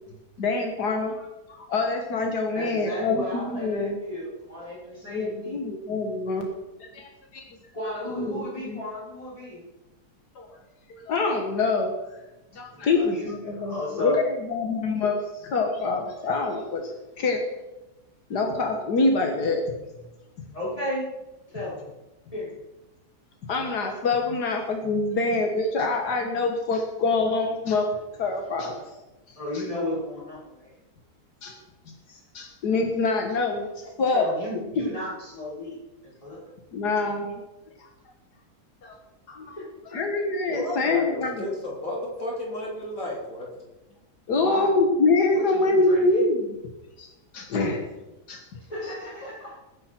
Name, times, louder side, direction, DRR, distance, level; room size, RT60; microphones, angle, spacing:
voice 1, 0.4-4.0 5.1-6.5 6.8-7.4 8.1-8.8 10.4-10.6 10.9-11.9 12.6-14.2 14.5-17.4 18.3-19.6 23.5-27.9 28.2-28.8 31.4-31.6 32.1-34.3 34.8-34.9 36.7-37.4 37.8-37.9 38.8-38.9 39.3-39.6 39.9-41.5 44.3-46.6 47.0-47.1 47.3-47.8 48.3-48.6, left 3 dB, 80° left, 3 dB, 2.0 m, -25 dB
voice 2, 2.5-5.6 7.7-9.6 12.7-14.2 20.5-21.1 21.5-21.9 22.3-22.6 29.4-30.8 34.1-36.5 39.9-40.0 44.3-44.7 45.3-46.2 48.7-49.6, left 1 dB, 20° left, -6 dB, 5.4 m, -34 dB
voice 3, 40.5-43.7, left 1 dB, 55° left, -3 dB, 4.1 m, -33 dB
21.0 x 10.0 x 4.5 m, 1.0 s
omnidirectional pair, 1.7 m